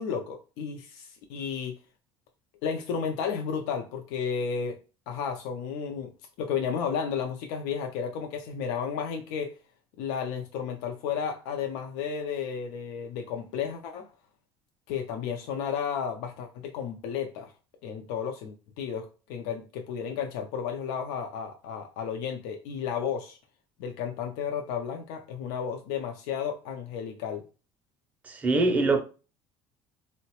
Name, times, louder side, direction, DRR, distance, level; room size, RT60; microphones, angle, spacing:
voice 1, 0.0-1.8 2.6-4.8 5.1-6.1 6.4-9.5 10.0-14.1 14.9-17.5 17.8-23.4 23.8-27.4, left 7 dB, 80° left, 0.4 m, -33 dB
voice 2, 28.2-29.0, right 3 dB, 15° right, 0.5 m, -23 dB
3.7 x 2.1 x 2.8 m
cardioid pair, 155°, 9 cm